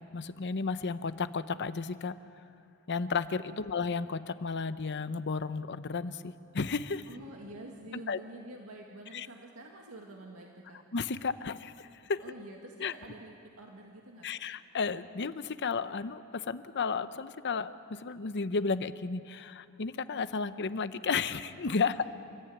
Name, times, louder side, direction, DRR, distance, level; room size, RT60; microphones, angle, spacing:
voice 1, 0.0-2.2 2.9-7.1 8.1-8.2 9.1-9.3 10.9-12.2 12.8-12.9 14.2-22.0, left 4 dB, 55° left, 13 dB, 0.7 m, -33 dB
voice 2, 7.1-10.8 12.2-14.4, right 1 dB, 75° right, 0 dB, 2.0 m, -48 dB
28.5 x 14.5 x 9.3 m, 2.7 s
head